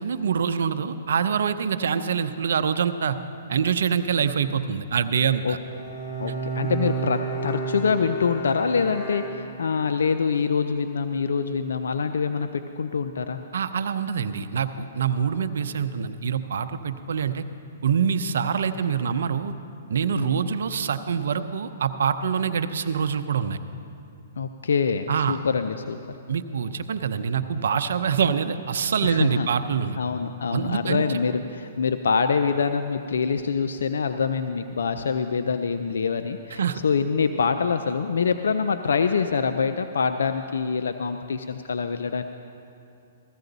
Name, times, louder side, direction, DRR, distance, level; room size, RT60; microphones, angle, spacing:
voice 1, 0.0-3.2 3.5-5.6 13.5-17.4 17.8-19.5 19.9-23.6 25.1-25.4 26.3-30.0 30.5-31.2 36.5-36.8, right 7 dB, 75° right, 11 dB, 0.6 m, -25 dB
Bowed string instrument, 5.5-9.9, right 3 dB, 30° left, 3.2 m, -31 dB
voice 2, 6.2-13.4 20.1-20.5 24.4-26.0 29.0-29.5 30.0-42.2, left 5 dB, 80° left, 8 dB, 0.5 m, -25 dB
16.0 x 13.5 x 4.0 m, 2.6 s
hypercardioid pair, 135°, 0 cm